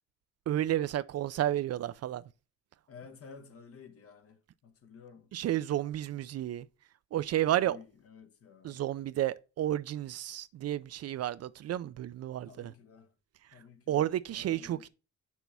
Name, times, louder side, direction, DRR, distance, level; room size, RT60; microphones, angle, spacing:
voice 1, 0.5-2.2 5.3-6.7 7.1-7.8 8.6-12.7 13.9-14.9, right 12 dB, 55° right, 0.5 m, -31 dB
voice 2, 2.9-5.3 7.6-8.8 12.4-13.1 13.5-14.9, left 5 dB, 50° left, 1.2 m, -53 dB
7.2 x 6.1 x 3.4 m
cardioid pair, 90°, 30 cm